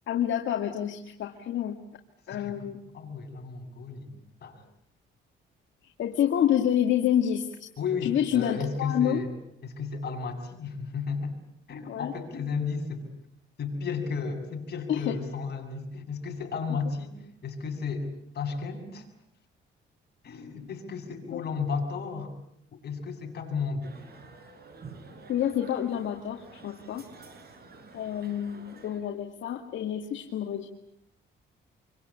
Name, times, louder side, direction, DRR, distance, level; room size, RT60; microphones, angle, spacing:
voice 1, 0.1-1.8 2.3-2.8 6.0-7.5 8.0-9.2 11.9-12.1 14.9-15.2 21.3-21.4 25.3-27.0 27.9-30.7, left 10 dB, 70° left, 3 dB, 2.3 m, -28 dB
voice 2, 2.3-4.1 4.4-4.6 7.8-9.3 9.6-11.4 11.7-13.1 13.6-19.1 20.2-22.3 22.7-24.0, left 5 dB, 55° left, 2 dB, 7.5 m, -33 dB
sound 1, 23.8-29.0, right 3 dB, 50° right, 5.9 m, -49 dB
28.0 x 24.0 x 8.6 m, 0.74 s
cardioid pair, 90°, 20 cm